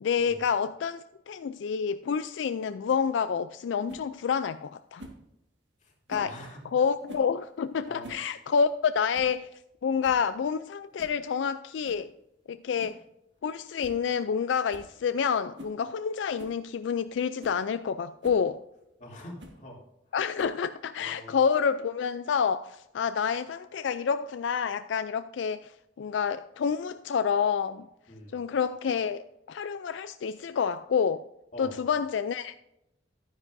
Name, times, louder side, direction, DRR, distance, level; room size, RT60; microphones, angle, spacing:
voice 1, 0.0-5.0 6.1-6.3 6.7-9.5 9.8-12.1 12.5-13.0 13.4-18.6 20.1-27.9 28.3-31.2 31.6-32.6, left 6 dB, 80° left, 0.4 m, -28 dB
sound 1, 3.9-4.1 5.0-5.2 6.1-6.3 7.1-7.3 7.8-8.3 8.5-8.6 9.1-9.4 9.7-9.8 10.0-10.3 11.0-11.2 11.8-12.1 12.8-13.0 13.4-13.5 13.8-14.0 14.3-14.4 14.7-14.9 15.6-15.8 16.4-16.6 17.1-17.2 17.4-17.6 18.2-18.4 19.4-19.6 20.4-20.7, right 1 dB, 70° right, 1.8 m, -46 dB
voice 2, 5.8-6.6 7.9-8.1 19.0-19.8 21.0-21.4 28.1-28.4 31.5-31.8, left 1 dB, 40° left, 2.9 m, -44 dB
12.0 x 9.9 x 2.6 m
head